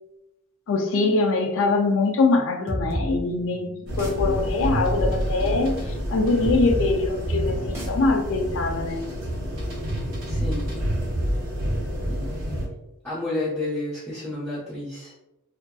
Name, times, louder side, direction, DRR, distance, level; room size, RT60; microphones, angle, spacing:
voice 1, 0.7-9.0, left 3 dB, 60° left, 4 dB, 0.4 m, -23 dB
sound 1, 2.7-10.1, equal, 10° right, 0.4 m, -35 dB
sound 2, 3.9-12.7, equal, 70° right, 0.8 m, -28 dB
voice 2, 10.3-10.7 12.1-12.7 13.0-15.1, left 2 dB, 10° left, -13 dB, 0.8 m, -31 dB
2.5 x 2.4 x 2.2 m, 0.92 s
head